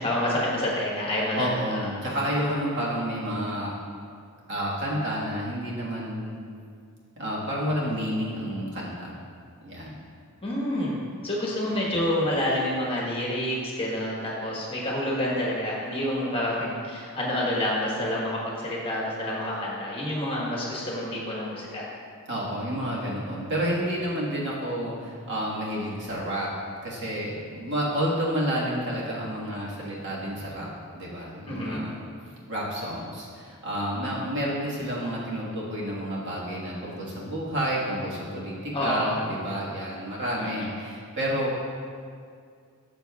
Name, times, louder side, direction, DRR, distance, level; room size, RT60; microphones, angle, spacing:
voice 1, 0.0-1.8 10.4-10.9 11.2-21.9 31.5-31.8 38.7-39.2 40.4-40.7, left 1 dB, 25° left, -4 dB, 1.2 m, -28 dB
voice 2, 1.3-3.7 4.5-6.3 7.2-9.2 9.6-10.0 11.7-12.1 22.3-26.5 26.8-30.7 30.9-32.0 32.5-41.6, equal, 50° right, -5 dB, 1.5 m, -30 dB
12.0 x 6.3 x 2.3 m, 2.2 s
head